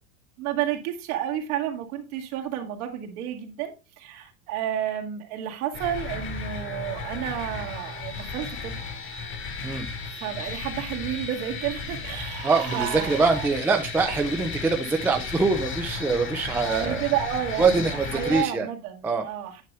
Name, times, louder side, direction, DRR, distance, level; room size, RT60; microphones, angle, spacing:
voice 1, 0.4-8.8 10.1-13.5 16.6-19.6, right 11 dB, 75° right, 2.1 m, -31 dB
sound 1, 5.7-18.4, left 4 dB, 30° left, 1.2 m, -34 dB
sound 2, 11.8-14.9, right 14 dB, 60° right, 1.6 m, -39 dB
voice 2, 12.4-17.0 17.6-18.7 19.0-19.2, right 4 dB, 5° right, 0.4 m, -24 dB
9.5 x 5.4 x 3.4 m
supercardioid pair, 150°, 43 cm